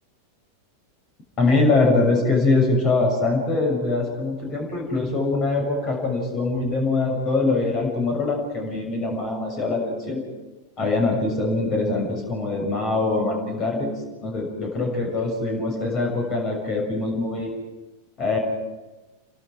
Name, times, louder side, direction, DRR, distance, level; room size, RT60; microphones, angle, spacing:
voice 1, 1.4-10.2 10.8-13.9 14.2-17.5 18.2-18.4, left 3 dB, 35° left, 1 dB, 6.9 m, -23 dB
30.0 x 24.0 x 4.9 m, 1.1 s
figure-of-eight pair, 90°, 0 cm